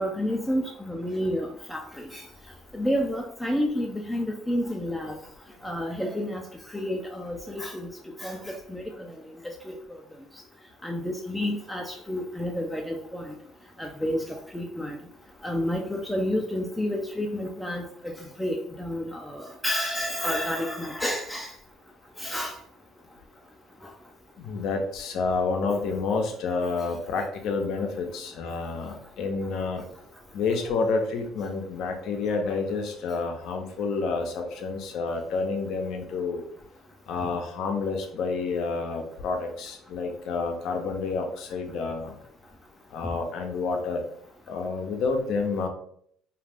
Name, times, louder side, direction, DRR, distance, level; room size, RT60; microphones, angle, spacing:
voice 1, 0.0-2.2 2.7-5.1 5.6-6.4 6.7-7.9 8.2-9.1 9.7-9.8 10.8-13.3 13.8-14.2 14.5-15.0 15.4-18.1 18.4-21.5 22.2-22.5 25.7-25.8 37.2-37.3, equal, 5° left, 0 dB, 0.4 m, -30 dB
voice 2, 24.4-29.9 30.3-36.4 37.1-42.1 42.9-44.0 44.5-45.7, left 4 dB, 65° left, 4 dB, 0.6 m, -29 dB
2.5 x 2.4 x 3.4 m, 0.65 s
supercardioid pair, 90°, 0 cm